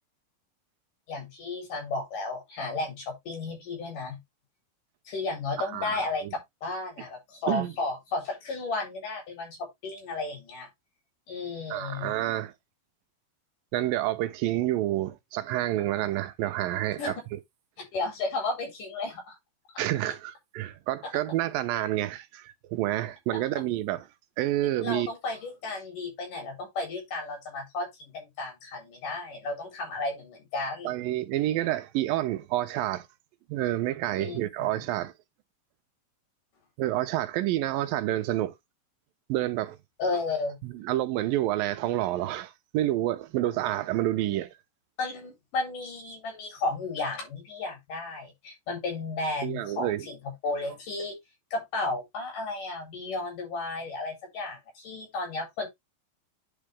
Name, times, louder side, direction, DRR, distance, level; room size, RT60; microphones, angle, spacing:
voice 1, 1.1-4.2 5.1-6.3 6.6-10.7 11.3-12.1 17.0-17.1 17.9-19.4 24.8-31.0 34.2-34.4 40.0-40.6 45.0-51.2 51.5-55.7, left 3 dB, 65° left, 5.4 m, -33 dB
voice 2, 5.6-6.3 7.5-7.7 11.7-12.5 13.7-17.4 19.8-24.1 24.4-25.1 30.8-33.1 33.5-35.1 36.8-38.5 39.3-39.8 40.6-44.5 49.4-50.1, right 14 dB, 85° right, 2.6 m, -29 dB
10.0 x 5.0 x 3.4 m
omnidirectional pair, 4.0 m